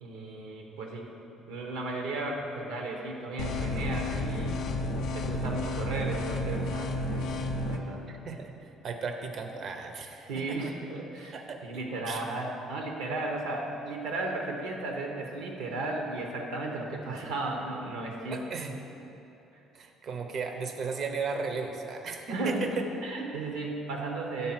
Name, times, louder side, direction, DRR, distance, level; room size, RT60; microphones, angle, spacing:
voice 1, 0.0-1.1 1.5-4.6 5.1-8.0 10.3-11.4 11.6-18.4 22.3-24.5, right 2 dB, 80° right, 1 dB, 1.0 m, -35 dB
sound 1, 3.4-7.8, left 2 dB, 70° left, 0.5 m, -31 dB
voice 2, 8.1-10.7 11.3-11.6 12.1-12.3 18.3-18.7 19.7-22.8, right 5 dB, 55° right, 5 dB, 0.7 m, -36 dB
7.1 x 4.0 x 5.9 m, 2.9 s
hypercardioid pair, 65°, 0 cm